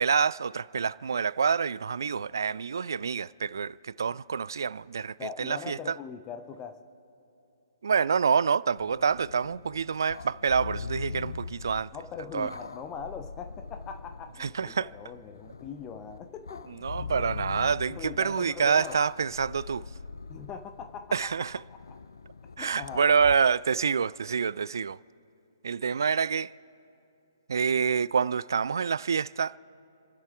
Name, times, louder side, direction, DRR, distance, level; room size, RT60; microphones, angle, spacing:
voice 1, 0.0-5.9 7.8-11.9 12.3-12.5 14.4-14.9 16.7-19.8 21.1-21.6 22.6-25.0 25.6-26.5 27.5-29.6, right 6 dB, 60° right, 0.3 m, -27 dB
voice 2, 5.2-6.8 11.9-17.2 17.9-19.0 20.3-21.3 21.7-22.0 22.6-23.0, left 7 dB, 20° left, 0.8 m, -41 dB
sound 1, 8.8-23.4, left 5 dB, 70° left, 0.6 m, -42 dB
30.0 x 12.5 x 3.5 m
figure-of-eight pair, 130°, 2 cm